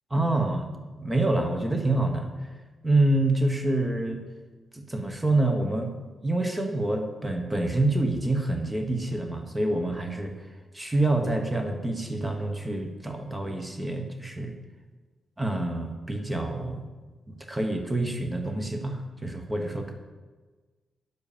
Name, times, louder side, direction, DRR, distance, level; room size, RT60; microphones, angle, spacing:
voice 1, 0.1-0.7 1.0-2.3 2.8-4.2 4.7-5.9 6.2-10.5 10.7-14.5 15.4-16.8 17.3-19.9, right 2 dB, 10° right, 4 dB, 1.0 m, -27 dB
9.5 x 7.4 x 6.9 m, 1.3 s
wide cardioid pair, 160°, 0 cm